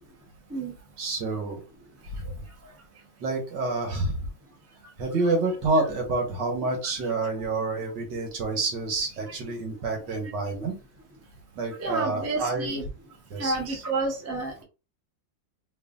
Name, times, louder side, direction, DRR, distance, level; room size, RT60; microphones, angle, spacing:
voice 1, 1.0-1.6 2.1-2.4 3.2-4.2 5.0-10.8 11.6-12.8 13.3-13.8, right 3 dB, 70° right, 2 dB, 1.9 m, -28 dB
voice 2, 11.8-12.9 13.4-14.6, right 2 dB, 15° right, 0 dB, 0.6 m, -30 dB
4.4 x 3.1 x 2.5 m, 0.31 s
omnidirectional pair, 2.0 m